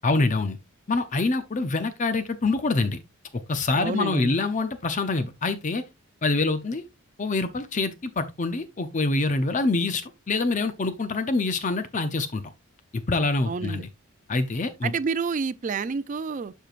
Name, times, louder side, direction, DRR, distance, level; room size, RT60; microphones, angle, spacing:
voice 1, 0.0-0.6 0.9-3.0 3.5-5.8 6.2-6.8 7.2-12.4 12.9-13.9 14.3-14.9, left 3 dB, 35° left, 0.6 m, -25 dB
voice 2, 3.8-4.3 13.5-13.8 14.8-16.5, right 5 dB, 35° right, 0.3 m, -29 dB
12.0 x 4.5 x 2.5 m
head